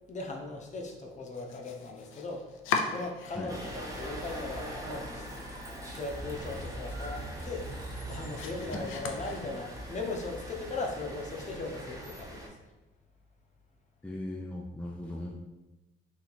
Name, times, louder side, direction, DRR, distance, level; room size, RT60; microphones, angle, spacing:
voice 1, 0.1-5.3 5.9-12.5, left 3 dB, 35° left, 1 dB, 0.8 m, -38 dB
Domestic sounds home sounds, 1.2-3.8 4.1-4.8 5.2-5.3 5.7-5.8 6.2-9.9, left 5 dB, 85° left, 0.5 m, -39 dB
sound 1, 3.5-12.5, right 1 dB, 15° right, 0.8 m, -41 dB
voice 2, 14.0-15.3, left 1 dB, 5° left, 0 dB, 0.4 m, -38 dB
3.0 x 2.8 x 4.0 m, 1.1 s
cardioid pair, 90°, 20 cm